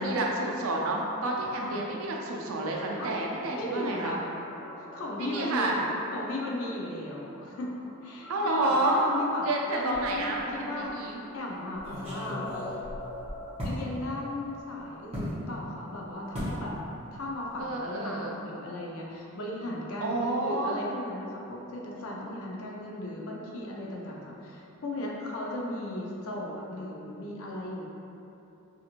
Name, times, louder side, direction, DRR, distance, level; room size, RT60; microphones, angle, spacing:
voice 1, 0.0-4.2 5.2-5.8 8.3-9.1 9.4-11.2 17.6-18.4 20.0-20.8, right 2 dB, 75° right, -1 dB, 0.4 m, -29 dB
voice 2, 3.6-4.2 4.8-5.8 6.1-7.7 8.0-12.5 13.6-16.8 17.1-27.9, left 1 dB, 75° left, -2 dB, 0.5 m, -36 dB
sound 1, 4.4-16.8, left 1 dB, 40° left, 0.7 m, -46 dB
sound 2, 9.9-10.5 10.9-11.0 11.8-13.8 15.1-15.4 16.3-16.6 16.9-17.3 17.5-17.7, equal, 30° right, 0.8 m, -37 dB
2.5 x 2.5 x 2.8 m, 2.8 s
head